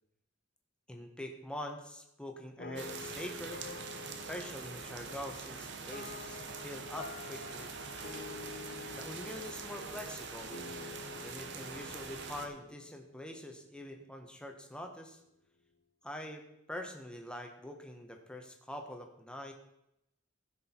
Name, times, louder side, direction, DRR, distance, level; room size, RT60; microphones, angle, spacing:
voice 1, 0.9-3.6 4.1-7.7 8.9-10.7 11.2-15.2 16.0-19.5, left 1 dB, 5° left, 3 dB, 1.3 m, -44 dB
sound 1, 2.6-13.7, left 4 dB, 55° left, 0.9 m, -48 dB
sound 2, 2.8-12.5, right 5 dB, 60° right, 1.0 m, -44 dB
15.0 x 6.3 x 4.5 m, 0.83 s
head